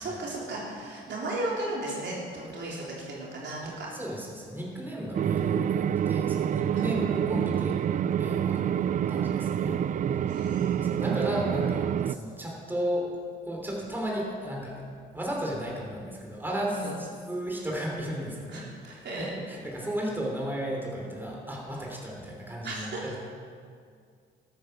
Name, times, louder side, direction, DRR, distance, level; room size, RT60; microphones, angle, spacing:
voice 1, 0.0-3.9 6.7-6.9 10.3-10.9 16.7-16.9 18.5-19.3 22.6-23.1, right 2 dB, 60° right, -4 dB, 3.7 m, -35 dB
voice 2, 3.6-7.8 8.2-9.8 10.8-13.2 13.4-14.8 15.1-23.2, equal, 10° right, -2 dB, 3.7 m, -34 dB
sound 1, 5.1-12.1, right 9 dB, 40° right, 0.4 m, -27 dB
13.0 x 9.6 x 6.7 m, 2.1 s
cardioid pair, 90°, 20 cm